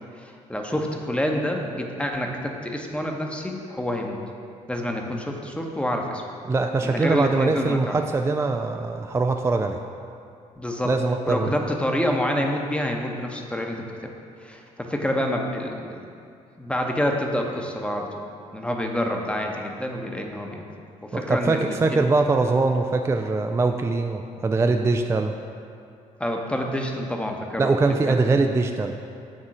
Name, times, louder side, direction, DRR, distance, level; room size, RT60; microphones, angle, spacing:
voice 1, 0.2-4.2 4.7-6.2 6.8-8.0 10.6-11.0 11.3-14.2 14.4-16.0 16.6-18.1 18.5-20.7 21.0-22.1 26.2-28.2, left 1 dB, 5° left, 2 dB, 0.9 m, -27 dB
voice 2, 6.5-9.8 10.9-11.5 21.1-25.3 27.6-29.0, right 3 dB, 15° right, 5 dB, 0.3 m, -22 dB
6.5 x 3.6 x 6.0 m, 2.4 s
figure-of-eight pair, 45°, 18 cm